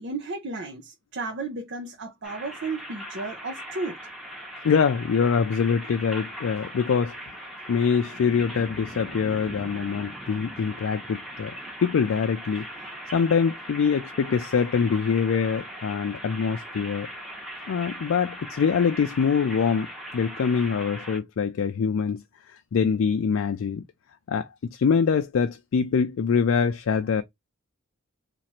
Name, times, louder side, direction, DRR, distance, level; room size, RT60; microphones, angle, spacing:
voice 1, 0.0-4.0, right 3 dB, 55° right, 0.6 m, -33 dB
sound 1, 2.2-21.2, equal, ahead, 0.9 m, -39 dB
voice 2, 4.6-7.1 7.7-11.5 11.8-12.7 13.1-17.1 17.7-22.2 22.7-23.8 24.3-27.2, left 6 dB, 70° left, 0.4 m, -24 dB
3.0 x 2.5 x 4.2 m
head